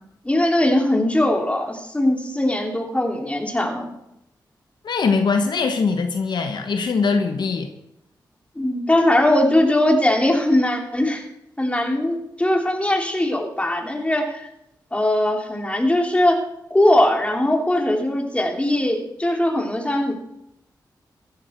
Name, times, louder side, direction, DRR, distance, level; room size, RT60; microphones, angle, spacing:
voice 1, 0.2-3.9 8.5-11.2 11.6-14.5 14.9-16.4 16.7-20.1, left 1 dB, 15° left, 2 dB, 3.2 m, -20 dB
voice 2, 4.8-7.7, left 4 dB, 70° left, 6 dB, 1.2 m, -21 dB
14.5 x 11.0 x 4.5 m, 0.83 s
cardioid pair, 55°, 8 cm